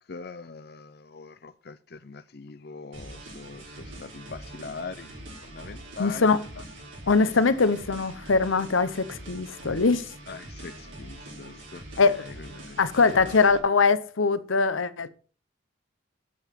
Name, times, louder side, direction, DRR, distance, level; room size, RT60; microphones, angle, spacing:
voice 1, 0.1-6.4 10.3-12.8 13.1-13.3, left 4 dB, 55° left, 0.6 m, -42 dB
sound 1, 2.9-13.6, right 1 dB, 75° right, 4.4 m, -43 dB
voice 2, 6.0-6.4 7.1-10.0 12.0-12.2 12.8-15.1, left 4 dB, 90° left, 0.8 m, -22 dB
8.6 x 7.1 x 5.8 m
head